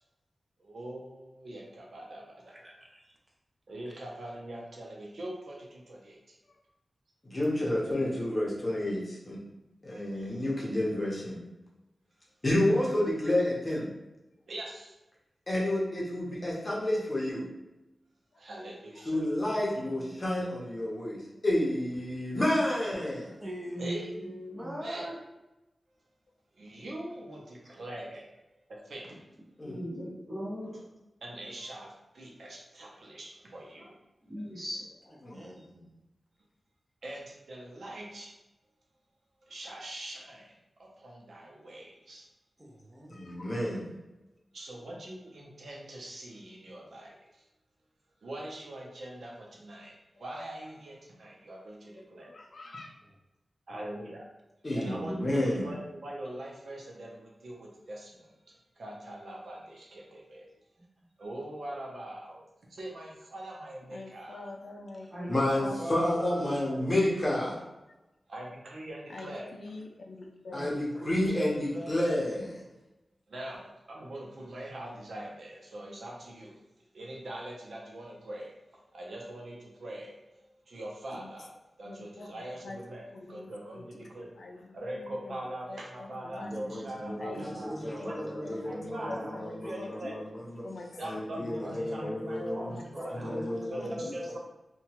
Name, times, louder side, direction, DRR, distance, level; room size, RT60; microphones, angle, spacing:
voice 1, 0.6-2.6 3.7-6.4 14.5-14.9 18.4-19.2 23.8-24.1 24.8-25.1 26.6-28.4 28.7-29.2 31.2-33.9 37.0-38.3 39.5-40.5 40.8-42.3 44.5-47.4 48.2-52.3 53.7-54.3 54.7-55.1 55.6-58.3 58.8-60.5 61.2-64.4 68.3-69.5 73.3-76.5 76.9-78.6 78.9-80.4 80.7-81.5 81.8-83.0 83.3-84.3 84.7-87.7 88.0-88.1 88.7-90.2 91.0-91.6 91.9-93.3 93.7-94.4, right 1 dB, 75° right, -2 dB, 0.6 m, -42 dB
voice 2, 2.5-3.1 23.4-25.2 27.6-27.7 35.3-35.6 42.6-43.3 65.4-67.6 70.6-72.1 86.8-90.2 90.6-91.1 91.5-92.6 93.0-94.4, equal, 20° right, -2 dB, 0.6 m, -42 dB
voice 3, 7.2-9.4 9.8-11.4 12.4-13.9 15.5-17.5 19.1-23.4 29.6-29.8 35.2-35.8 43.1-43.8 54.6-55.7 65.3-67.6 70.5-72.6 86.3-90.6 91.0-92.8 93.1-93.9, left 1 dB, 30° left, -4 dB, 0.7 m, -30 dB
voice 4, 23.7-24.3 24.6-24.7 29.6-30.8 34.2-34.8 55.0-55.2 65.1-66.0 70.6-70.7 87.7-87.9 88.9-89.1 91.3-92.2 93.1-93.4, equal, 40° right, -8 dB, 1.3 m, -40 dB
voice 5, 43.1-43.6 50.1-50.5 51.9-53.0 63.9-65.7 69.1-70.7 81.1-81.3 81.8-82.8 83.1-84.1 84.4-85.4 85.7-86.5 87.2-87.6 88.0-88.1 88.4-90.1 90.6-91.6 91.9-92.2 92.7-92.8 93.3-94.2, left 2 dB, 70° left, 2 dB, 0.4 m, -46 dB
2.8 x 2.2 x 2.9 m, 0.98 s
wide cardioid pair, 115°, 0 cm